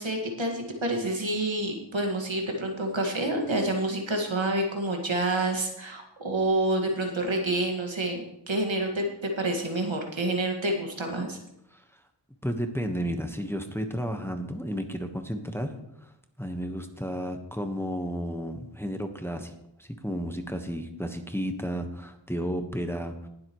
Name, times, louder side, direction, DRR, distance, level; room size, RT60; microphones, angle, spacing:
voice 1, 0.0-11.4, right 1 dB, 75° right, 2 dB, 2.0 m, -28 dB
voice 2, 12.4-15.7 16.0-16.1 16.4-19.5 19.8-23.3, equal, 5° left, 5 dB, 1.3 m, -32 dB
19.5 x 7.7 x 3.1 m, 0.81 s
wide cardioid pair, 40°, 46 cm